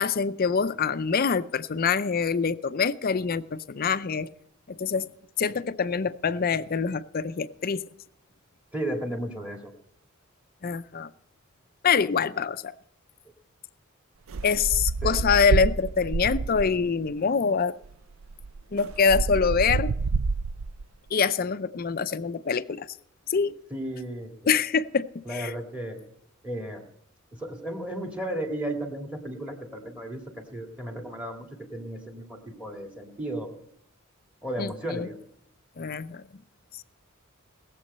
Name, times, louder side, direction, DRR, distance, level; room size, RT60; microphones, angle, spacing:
voice 1, 0.0-4.3 4.7-5.1 5.4-7.8 10.6-11.1 11.8-12.7 14.4-17.8 18.7-19.9 21.1-22.9 23.3-23.6 24.5-25.5 34.6-35.1 35.8-36.2 36.8-36.9, left 5 dB, 45° left, 0.5 m, -25 dB
voice 2, 8.7-9.7 15.0-15.2 23.7-24.3 25.3-26.0 26.4-26.8 27.4-31.5 31.7-33.5 34.4-35.2, right 1 dB, 5° right, 2.0 m, -34 dB
sound 1, 14.3-16.9 17.8-17.9 18.2-20.8, right 4 dB, 80° right, 0.5 m, -28 dB
19.5 x 7.6 x 5.4 m
head